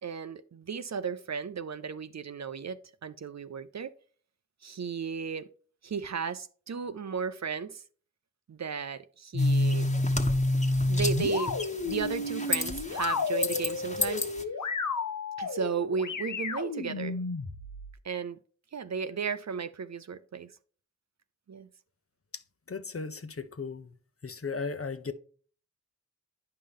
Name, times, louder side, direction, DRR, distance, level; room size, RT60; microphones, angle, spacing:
voice 1, 0.0-3.9 4.6-5.5 5.8-7.8 8.5-9.9 10.9-11.5 11.8-14.3 15.4-17.2 18.0-18.4 18.7-20.5 21.5-21.7, right 6 dB, 65° right, 0.6 m, -34 dB
sound 1, 9.3-17.9, left 2 dB, 90° left, 0.9 m, -30 dB
sound 2, 9.4-14.4, left 2 dB, 25° left, 1.3 m, -35 dB
voice 2, 22.7-23.9 24.2-25.1, left 4 dB, 50° left, 0.9 m, -36 dB
9.9 x 5.6 x 3.6 m
wide cardioid pair, 50°, 29 cm